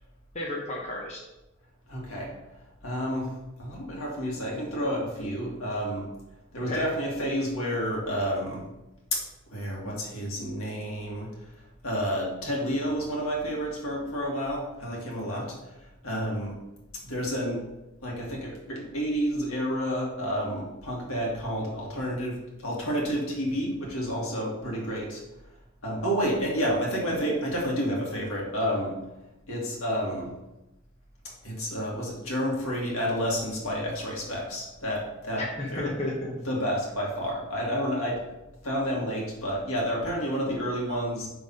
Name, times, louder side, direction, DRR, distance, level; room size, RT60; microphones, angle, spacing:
voice 1, 0.3-1.2 6.7-6.8 35.4-36.3, left 1 dB, 30° left, -3 dB, 0.9 m, -32 dB
voice 2, 1.9-2.3 2.8-3.3 3.6-6.1 6.5-8.6 9.1-9.2 9.5-11.3 11.8-15.5 16.0-16.6 17.0-17.6 18.0-22.3 22.6-25.2 25.8-28.9 29.5-30.3 31.4-35.4 35.7-35.9 36.5-38.2 38.6-41.3, equal, 80° left, -3 dB, 2.0 m, -30 dB
5.5 x 3.9 x 5.3 m, 0.97 s
head